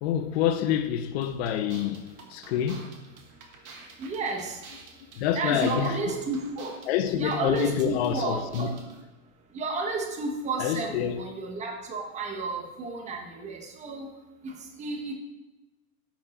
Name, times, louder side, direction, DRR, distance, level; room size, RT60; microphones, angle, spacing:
voice 1, 0.0-3.0 5.1-6.0 6.9-8.8 10.6-11.2, left 9 dB, 50° left, 0.7 m, -27 dB
sound 1, 1.2-9.0, right 4 dB, 85° right, 1.7 m, -48 dB
voice 2, 4.0-4.6 5.3-6.7 7.2-8.7 9.5-14.1 14.4-14.5 14.8-15.1, right 3 dB, 15° right, 1.0 m, -32 dB
10.0 x 4.7 x 4.1 m
supercardioid pair, 145°, 42 cm